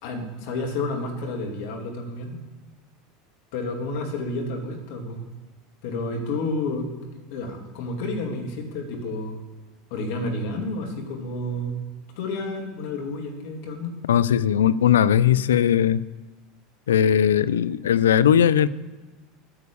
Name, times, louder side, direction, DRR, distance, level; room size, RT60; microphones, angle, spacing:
voice 1, 0.0-2.4 3.5-5.2 5.8-6.9 7.3-9.4 9.9-11.8 12.2-13.9, left 2 dB, 65° left, 3 dB, 2.5 m, -30 dB
voice 2, 14.1-16.0 16.9-18.7, left 9 dB, 85° left, 16 dB, 0.4 m, -19 dB
8.7 x 8.0 x 7.0 m, 1.3 s
hypercardioid pair, 85°, 0 cm